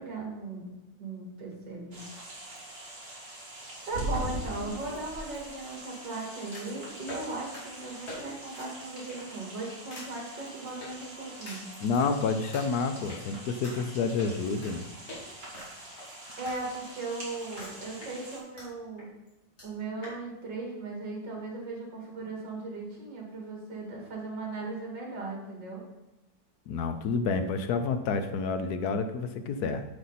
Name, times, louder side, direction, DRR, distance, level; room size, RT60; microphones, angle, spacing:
voice 1, 0.0-2.1 3.9-11.6 16.4-19.1 19.6-25.9, right 3 dB, 70° right, -1 dB, 2.9 m, -38 dB
sound 1, 1.9-18.4, right 1 dB, 30° right, 2.9 m, -46 dB
sound 2, 3.9-5.2 6.5-6.8 7.1-7.3 7.5-7.6 8.1-8.2 8.5-8.7 9.1-9.4 9.9-10.1 10.8-10.9 11.5-12.1 12.5-12.6 13.1-13.2 13.6-13.7 14.2-14.7 15.1-15.2 15.5-16.6 16.9-17.0 17.6-17.7 18.0-18.7 19.0-19.1 19.3-19.4 19.6-19.7 20.0-20.2, right 1 dB, 35° left, 3.0 m, -38 dB
voice 2, 11.8-14.8 26.7-29.8, left 4 dB, 70° left, 9 dB, 1.1 m, -29 dB
8.2 x 7.8 x 4.1 m, 0.99 s
omnidirectional pair, 2.0 m